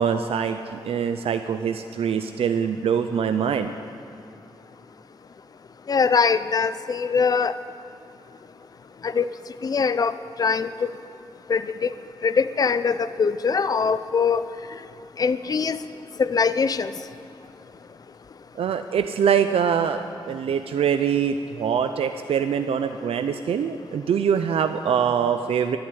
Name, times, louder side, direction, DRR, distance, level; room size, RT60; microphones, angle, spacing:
voice 1, 0.0-3.7 18.6-25.8, right 7 dB, 85° right, 9 dB, 0.5 m, -24 dB
voice 2, 5.9-7.5 9.0-9.2 9.6-10.1 10.4-10.9 11.5-11.9 12.2-14.4 15.2-15.8 16.2-16.9, left 5 dB, 40° left, 14 dB, 0.5 m, -22 dB
12.0 x 11.0 x 9.7 m, 2.7 s
wide cardioid pair, 140°, 10 cm